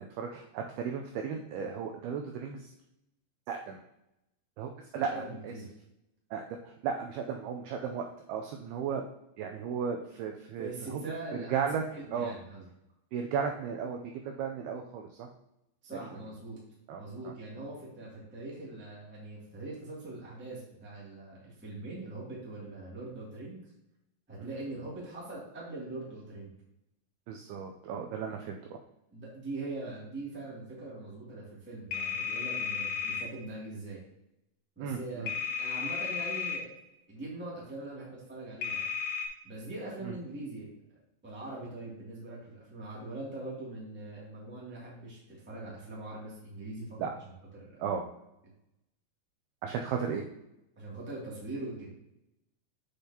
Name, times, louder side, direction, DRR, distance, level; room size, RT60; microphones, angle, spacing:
voice 1, 0.0-2.7 3.5-3.8 4.6-5.5 6.3-9.0 9.4-11.0 11.3-11.8 12.1-12.3 13.1-15.3 16.9-17.3 24.4-24.5 27.3-28.8 34.8-35.3 40.0-40.2 47.0-47.1 47.8-48.1 49.6-50.3, right 7 dB, 85° right, 3 dB, 2.2 m, -35 dB
voice 2, 5.0-5.6 10.6-12.6 15.8-16.6 17.0-23.6 24.3-26.5 29.1-34.0 34.7-35.3 35.6-36.7 37.1-38.9 39.4-40.7 41.2-47.0 47.6-47.8 50.7-51.9, right 2 dB, 5° right, -6 dB, 1.0 m, -42 dB
sound 1, 31.9-33.3 35.3-36.6 38.6-39.3, left 6 dB, 85° left, 3.2 m, -33 dB
8.1 x 6.6 x 2.9 m, 0.86 s
omnidirectional pair, 5.2 m